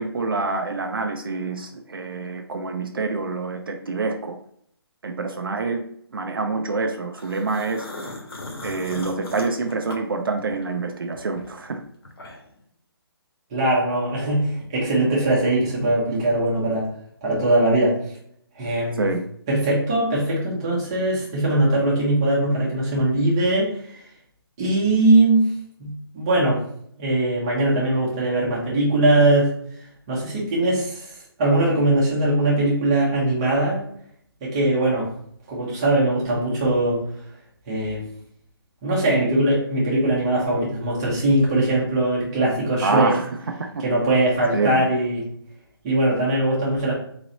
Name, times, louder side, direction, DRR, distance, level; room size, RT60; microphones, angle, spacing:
voice 1, 0.0-4.4 5.0-5.8 6.1-8.1 8.6-11.8 19.0-19.2 42.8-43.8 44.5-44.8, right 3 dB, 60° right, 4 dB, 0.5 m, -26 dB
sound 1, 7.2-10.7 11.1-12.6, left 2 dB, 70° left, 1.4 m, -38 dB
voice 2, 13.5-16.9 17.2-18.0 18.6-19.1 19.5-24.0 24.6-25.9 26.1-26.6 27.0-29.5 30.1-31.0 31.4-33.8 34.4-35.1 35.5-37.0 37.7-38.0 38.8-43.1 43.8-45.2 45.8-46.9, right 1 dB, 15° right, -6 dB, 0.8 m, -21 dB
3.9 x 3.1 x 4.0 m, 0.68 s
hypercardioid pair, 175°, 13 cm